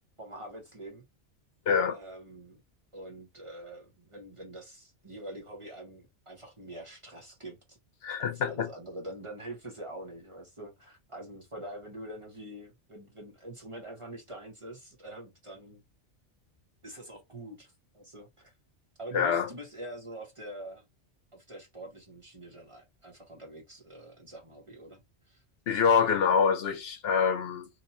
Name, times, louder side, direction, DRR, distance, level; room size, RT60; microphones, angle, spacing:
voice 1, 0.2-1.0 1.9-2.6 2.9-7.8 8.2-15.8 16.8-18.5 19.0-20.9 21.3-25.0 25.3-25.4, right 1 dB, 30° right, 0.9 m, -45 dB
voice 2, 1.7-2.0 8.0-8.7 19.1-19.5 25.7-27.7, left 6 dB, 65° left, 0.8 m, -25 dB
2.8 x 2.2 x 4.0 m
omnidirectional pair, 1.2 m